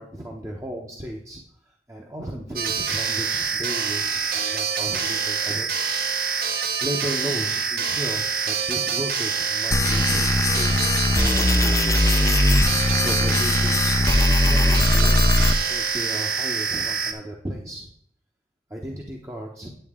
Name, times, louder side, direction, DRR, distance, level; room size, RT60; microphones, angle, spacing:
voice 1, 0.0-6.0 6.8-10.9 11.3-12.0 13.0-17.9 18.7-19.7, equal, 15° right, -1 dB, 0.8 m, -35 dB
sound 1, 2.6-17.1, right 6 dB, 55° right, 0.8 m, -26 dB
sound 2, 9.7-15.5, left 2 dB, 20° left, 0.4 m, -20 dB
9.8 x 7.7 x 3.6 m, 0.65 s
head